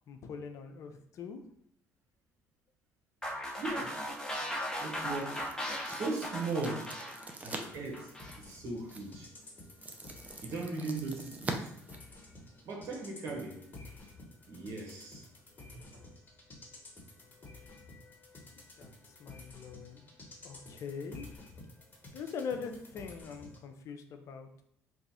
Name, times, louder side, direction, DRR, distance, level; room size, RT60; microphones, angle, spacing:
voice 1, 0.1-1.4 18.5-20.0 20.4-21.3 22.1-24.5, left 6 dB, 60° left, 6 dB, 0.5 m, -42 dB
sound 1, 3.2-8.4, equal, 10° left, 0.9 m, -38 dB
voice 2, 3.6-4.0 4.8-5.4 5.8-6.9 7.4-8.1 8.4-9.3 10.4-11.7 12.6-13.6 14.4-15.2 15.7-16.0, right 3 dB, 60° right, 0 dB, 1.2 m, -38 dB
sound 2, 4.1-12.7, right 2 dB, 25° right, 0.6 m, -46 dB
sound 3, 7.4-23.6, left 2 dB, 30° left, 1.2 m, -52 dB
3.0 x 2.4 x 4.2 m, 0.72 s
supercardioid pair, 85°, 6 cm